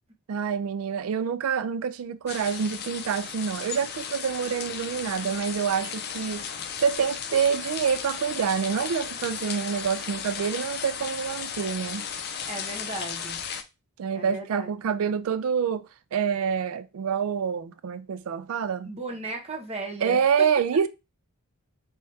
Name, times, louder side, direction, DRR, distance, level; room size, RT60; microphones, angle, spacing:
voice 1, 0.3-6.4 6.8-12.1 14.0-18.9 20.0-20.9, right 7 dB, 70° right, 0.3 m, -27 dB
sound 1, 2.3-13.6, left 7 dB, 45° left, 0.5 m, -35 dB
voice 2, 12.5-13.4 14.1-14.7 18.8-20.5, right 2 dB, 30° right, 0.8 m, -36 dB
3.4 x 2.7 x 3.2 m
head